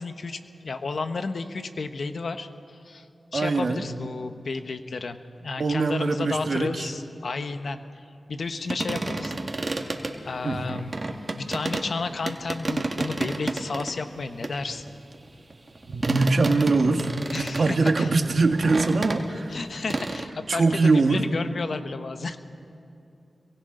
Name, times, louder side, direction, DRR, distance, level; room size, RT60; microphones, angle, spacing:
voice 1, 0.0-2.5 2.8-3.1 3.3-7.8 8.3-9.3 10.2-10.9 11.4-15.0 17.3-18.1 19.5-22.4, left 4 dB, 70° left, 8 dB, 1.1 m, -32 dB
voice 2, 3.3-3.8 5.6-6.9 10.4-10.6 15.9-19.6 20.5-21.3, right 3 dB, 65° right, 6 dB, 1.5 m, -23 dB
sound 1, 8.7-11.9 12.3-13.9 14.4-19.6 19.9-20.3, right 2 dB, 50° right, 2.0 m, -30 dB
29.5 x 23.5 x 3.9 m, 2.7 s
cardioid pair, 40°, 0 cm